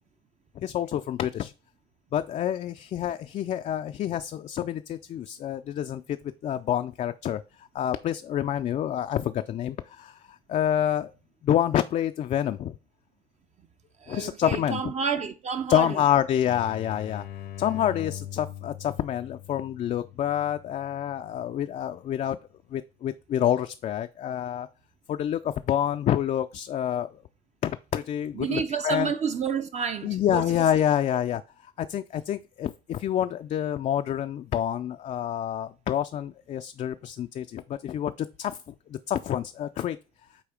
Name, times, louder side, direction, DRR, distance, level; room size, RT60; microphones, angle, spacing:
voice 1, 0.6-1.5 2.1-6.2 6.4-7.4 7.7-10.2 10.5-11.1 11.4-12.7 14.1-14.8 15.7-17.2 17.6-22.4 22.7-24.7 25.1-27.1 27.6-29.1 30.0-31.4 31.8-38.6 38.9-40.0, left 10 dB, 45° left, 0.4 m, -27 dB
voice 2, 14.0-16.0 28.3-30.7 31.1-31.2, right 6 dB, 40° right, 0.6 m, -30 dB
sound 1, 16.4-21.9, left 11 dB, 65° left, 0.7 m, -42 dB
8.2 x 2.8 x 5.0 m
cardioid pair, 110°, 17 cm